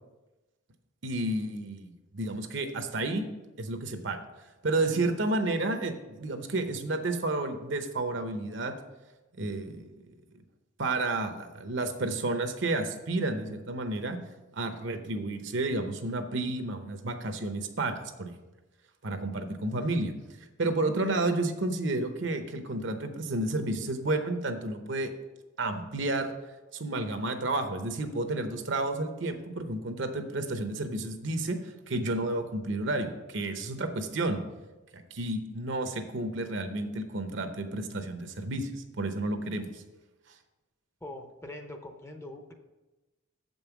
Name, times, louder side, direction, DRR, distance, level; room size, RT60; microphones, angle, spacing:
voice 1, 1.0-3.2 3.6-4.2 4.6-8.8 9.4-9.9 10.8-14.2 14.5-18.3 19.0-20.1 20.6-25.1 25.6-26.3 26.7-34.4 34.9-39.8, right 2 dB, 60° right, 7 dB, 0.8 m, -31 dB
voice 2, 41.0-42.5, left 1 dB, 10° left, 4 dB, 0.6 m, -43 dB
7.4 x 5.4 x 6.0 m, 1.1 s
head